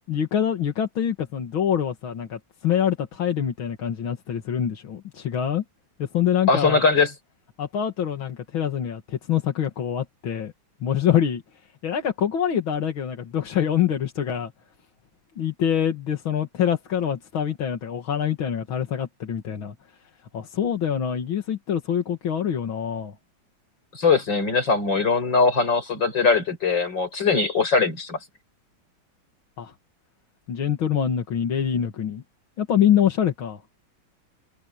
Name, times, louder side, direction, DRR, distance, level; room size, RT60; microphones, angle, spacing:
voice 1, 0.1-5.6 6.0-6.8 7.6-10.5 10.8-11.4 11.8-14.5 15.4-19.7 20.3-23.1 29.6-29.7 30.5-32.2 32.6-33.6, left 9 dB, 90° left, 2.6 m, -25 dB
voice 2, 6.5-7.1 23.9-28.2, left 4 dB, 65° left, 6.3 m, -21 dB
omnidirectional pair, 2.1 m